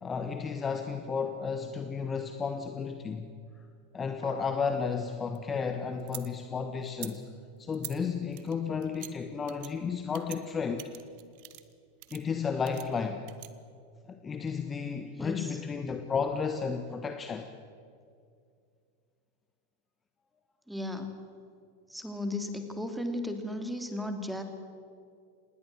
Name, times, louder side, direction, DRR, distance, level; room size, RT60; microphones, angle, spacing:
voice 1, 0.0-3.3 3.9-7.2 7.6-10.9 12.1-13.2 14.1-17.5, left 5 dB, 20° left, 7 dB, 1.4 m, -33 dB
sound 1, 4.2-4.8, left 3 dB, 75° left, 2.6 m, -44 dB
sound 2, 5.0-6.3 6.8-7.1 7.7-8.0 8.3-9.1 9.5-9.7 10.1-10.4 10.8-11.7 12.0-12.2 12.6-13.5, right 21 dB, 45° right, 1.3 m, -45 dB
voice 2, 20.7-21.1 21.9-24.4, left 1 dB, ahead, 6 dB, 2.9 m, -35 dB
27.0 x 20.0 x 7.8 m, 2.3 s
figure-of-eight pair, 90°, 0 cm